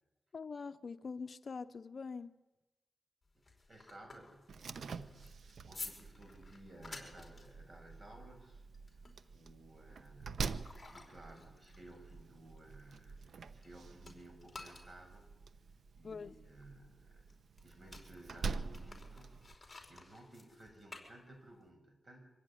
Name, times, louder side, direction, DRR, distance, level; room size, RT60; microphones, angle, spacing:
voice 1, 0.3-2.3 16.0-16.4, left 5 dB, 60° left, 0.7 m, -44 dB
sound 1, 3.2-13.7 14.0-21.7, left 3 dB, 25° left, 4.9 m, -54 dB
voice 2, 3.3-8.6 9.3-15.3 15.9-17.2 17.6-22.2, right 1 dB, 40° right, 6.6 m, -57 dB
Slam, 4.5-19.5, right 5 dB, 90° right, 0.9 m, -46 dB
24.5 x 16.5 x 9.9 m
wide cardioid pair, 100°, 0 cm